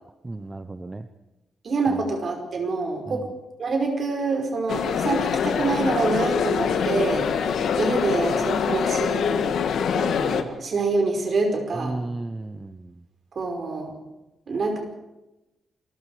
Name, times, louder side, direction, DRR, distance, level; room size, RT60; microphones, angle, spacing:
voice 1, 0.2-1.1 1.9-2.0 3.1-3.3 11.8-12.9, right 2 dB, 15° right, 9 dB, 0.8 m, -34 dB
voice 2, 1.6-3.3 3.6-9.4 9.9-12.0 13.4-13.9 14.5-14.8, right 3 dB, 45° right, 3 dB, 5.4 m, -26 dB
sound 1, 4.7-10.4, left 7 dB, 75° left, 1.8 m, -24 dB
28.5 x 21.5 x 5.0 m, 1.0 s
wide cardioid pair, 155°, 0 cm